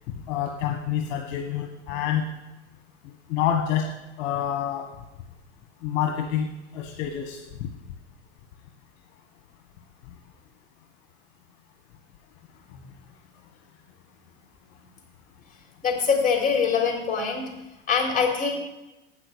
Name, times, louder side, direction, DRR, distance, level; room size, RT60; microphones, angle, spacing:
voice 1, 0.3-2.2 3.0-3.9 4.2-4.9 5.8-6.5 6.7-7.7, left 9 dB, 55° left, 2 dB, 1.5 m, -27 dB
voice 2, 15.8-17.5 17.9-18.5, left 6 dB, 20° left, 0 dB, 3.8 m, -23 dB
8.9 x 6.3 x 8.1 m, 1.0 s
hypercardioid pair, 105°, 37 cm